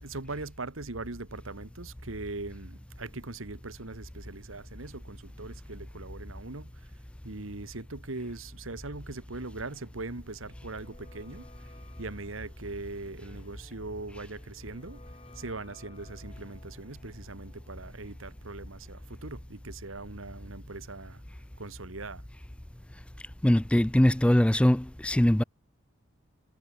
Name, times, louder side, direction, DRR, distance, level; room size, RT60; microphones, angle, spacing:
voice 1, 0.0-6.9 7.2-11.4 12.0-15.0 15.3-21.2 21.6-22.2, right 3 dB, 80° right, 1.7 m, -40 dB
sound 1, 9.6-21.4 21.6-21.7, left 2 dB, 30° left, 3.4 m, -59 dB
voice 2, 23.4-25.4, left 1 dB, 5° left, 0.4 m, -22 dB
head